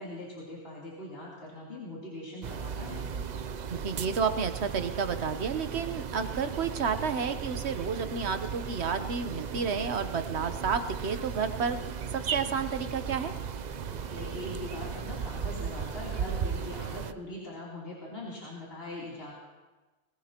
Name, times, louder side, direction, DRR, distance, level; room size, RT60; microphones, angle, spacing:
voice 1, 0.0-3.1 13.9-19.4, left 1 dB, 65° left, -7 dB, 3.6 m, -41 dB
sound 1, 2.4-17.1, right 7 dB, 50° right, 0.6 m, -36 dB
voice 2, 3.7-11.8 12.1-13.3, right 6 dB, 85° right, 9 dB, 1.3 m, -31 dB
21.5 x 20.0 x 3.0 m, 1.2 s
omnidirectional pair, 1.1 m